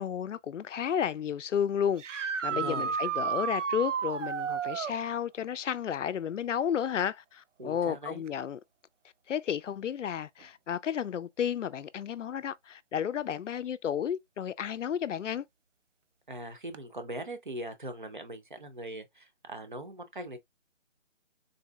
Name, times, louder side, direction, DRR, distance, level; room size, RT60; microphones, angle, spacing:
voice 1, 0.0-8.6 9.3-15.4, left 8 dB, 85° left, 0.5 m, -32 dB
sound 1, 2.0-5.0 8.3-8.4 10.4-10.5 16.7-16.8, right 7 dB, 85° right, 0.6 m, -32 dB
voice 2, 2.5-3.1 7.6-8.2 16.3-20.4, right 1 dB, 45° right, 0.6 m, -41 dB
3.8 x 2.7 x 2.2 m
hypercardioid pair, 175°, 36 cm